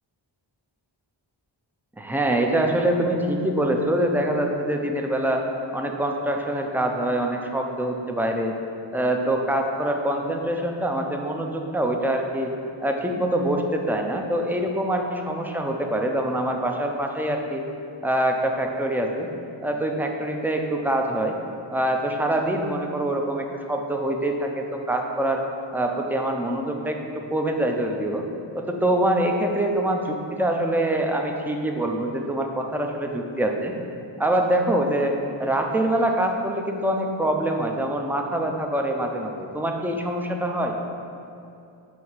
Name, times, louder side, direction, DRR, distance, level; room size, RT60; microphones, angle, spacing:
voice 1, 2.0-5.4 5.7-8.5 8.9-12.5 12.8-17.6 18.0-19.3 19.6-21.4 21.7-25.4 25.7-28.2 28.5-33.7 34.2-40.8, right 1 dB, 5° right, 2 dB, 0.4 m, -24 dB
6.1 x 2.8 x 5.5 m, 2.7 s
wide cardioid pair, 65°, 48 cm